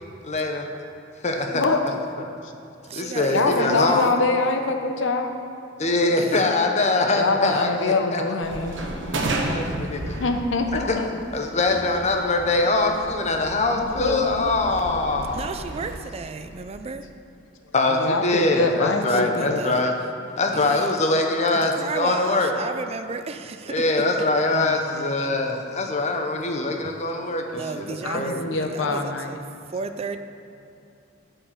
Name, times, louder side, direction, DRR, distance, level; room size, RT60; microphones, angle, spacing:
voice 1, 0.2-0.7 1.2-1.7 2.9-4.0 5.8-8.2 8.9-10.2 10.9-11.0 11.3-15.4 17.7-19.9 20.4-22.5 23.7-28.6, left 2 dB, 35° left, 0.9 m, -23 dB
voice 2, 1.5-1.8 2.4-2.5 3.3-5.4 7.2-8.9 10.2-11.1 13.7-14.5 18.0-19.6 24.5-25.1 28.0-29.4, left 3 dB, 80° left, 0.8 m, -25 dB
voice 3, 2.9-4.1 6.2-6.4 15.3-17.1 19.1-19.8 20.5-20.9 21.5-23.9 27.5-29.4 29.7-30.2, right 4 dB, 30° right, 0.4 m, -33 dB
sound 1, 8.4-16.0, right 2 dB, 70° right, 1.0 m, -33 dB
8.3 x 5.4 x 7.3 m
head